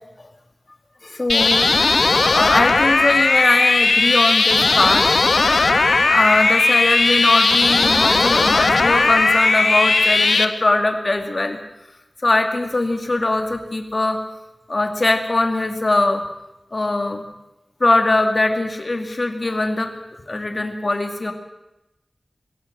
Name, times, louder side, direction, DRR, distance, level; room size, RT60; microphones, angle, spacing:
voice 1, 1.0-1.7 2.3-5.1 6.0-11.6 12.2-14.2 14.7-16.2 16.7-17.2 17.8-19.9 20.3-21.3, left 2 dB, 45° left, 5 dB, 2.2 m, -21 dB
sound 1, 1.3-10.4, left 3 dB, 70° left, 1.4 m, -17 dB
21.5 x 16.0 x 7.7 m, 0.94 s
wide cardioid pair, 80°, 0 cm